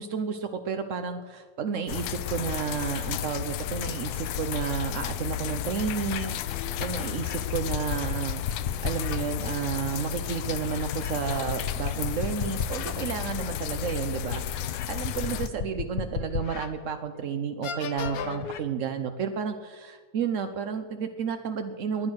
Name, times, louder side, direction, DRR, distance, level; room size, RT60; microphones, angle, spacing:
voice 1, 0.0-22.1, right 6 dB, 65° right, 7 dB, 0.7 m, -31 dB
sound 1, 1.9-15.5, left 10 dB, 90° left, 1.6 m, -33 dB
sound 2, 6.8-9.2 10.6-12.9 13.4-13.5 14.3-16.7 17.2-17.3 17.6-18.6, left 7 dB, 55° left, 1.0 m, -34 dB
21.0 x 9.5 x 6.3 m, 1.5 s
omnidirectional pair, 2.3 m